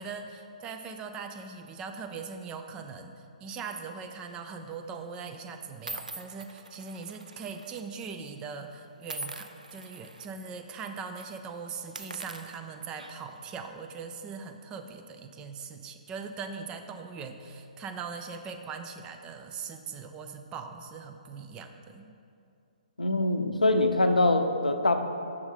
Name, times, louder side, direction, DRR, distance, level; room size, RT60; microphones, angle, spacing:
voice 1, 0.0-22.2, right 5 dB, 20° right, 6 dB, 0.4 m, -40 dB
sound 1, 4.2-4.5 5.2-5.3 5.9-7.8 8.1-8.3 9.1-10.3 10.7-10.8 11.1-11.3 11.8-13.4, right 2 dB, 90° right, 0.4 m, -43 dB
voice 2, 23.0-25.0, left 2 dB, 90° left, 7 dB, 0.6 m, -24 dB
6.2 x 4.7 x 5.6 m, 2.5 s
figure-of-eight pair, 130°, 4 cm